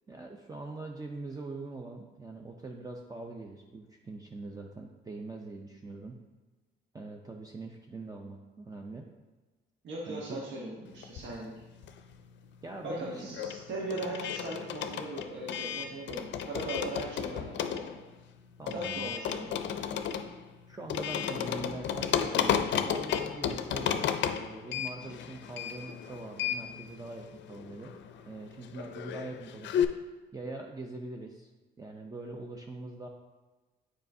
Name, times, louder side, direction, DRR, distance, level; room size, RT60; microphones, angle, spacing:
voice 1, 0.1-6.2 6.9-9.1 10.1-10.4 12.6-13.4 18.6-19.2 20.7-27.9 28.3-31.5 31.8-33.1, right 2 dB, 20° right, 1 dB, 0.5 m, -43 dB
voice 2, 9.8-11.5 12.8-17.9 18.7-19.6, right 1 dB, 70° right, -3 dB, 1.2 m, -38 dB
sound 1, 11.0-12.3 12.5-29.9, left 8 dB, 65° left, 0.5 m, -33 dB
7.4 x 4.9 x 2.7 m, 1.2 s
cardioid pair, 90°, 20 cm